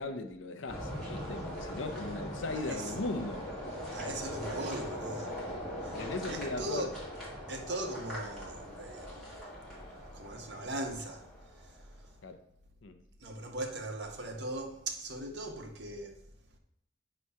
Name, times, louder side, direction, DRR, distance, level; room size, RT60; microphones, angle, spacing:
voice 1, 0.0-3.5 5.9-6.9 12.2-12.4 12.8-13.0, left 3 dB, 85° left, 0.6 m, -38 dB
sound 1, 0.7-11.9, equal, ahead, 2.2 m, -41 dB
voice 2, 2.5-2.9 3.9-5.4 5.8-6.0 6.3-6.9 7.5-9.4 10.1-12.2 13.2-16.2, right 2 dB, 65° right, 1.0 m, -40 dB
8.3 x 3.0 x 5.5 m
head